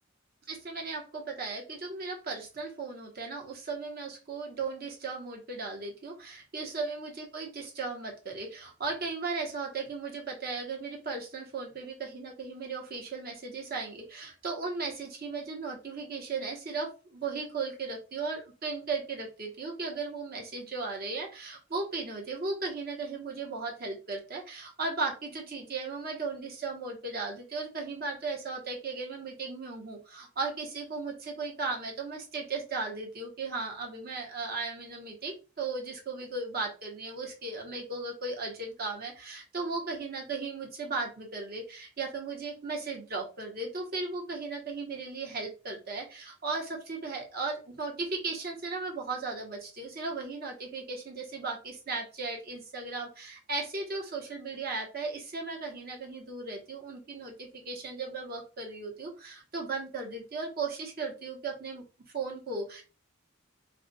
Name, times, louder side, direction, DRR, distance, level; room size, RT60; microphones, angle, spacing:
voice 1, 0.5-61.8 62.1-62.8, right 3 dB, 45° right, 0 dB, 0.9 m, -36 dB
2.3 x 2.2 x 3.9 m, 0.33 s
head